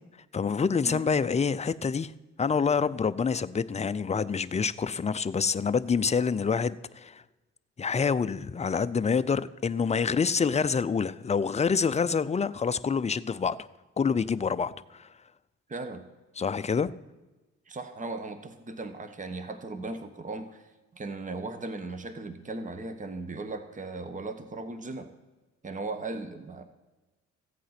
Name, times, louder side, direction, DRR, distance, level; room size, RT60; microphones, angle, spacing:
voice 1, 0.3-2.1 2.4-7.2 7.8-13.7 14.0-15.1 16.4-16.9, left 5 dB, 20° left, 0.5 m, -27 dB
voice 2, 15.7-16.0 17.7-20.6 20.9-25.1 25.6-26.6, right 3 dB, 25° right, 1.2 m, -37 dB
15.0 x 8.4 x 5.9 m
cardioid pair, 90°, 30 cm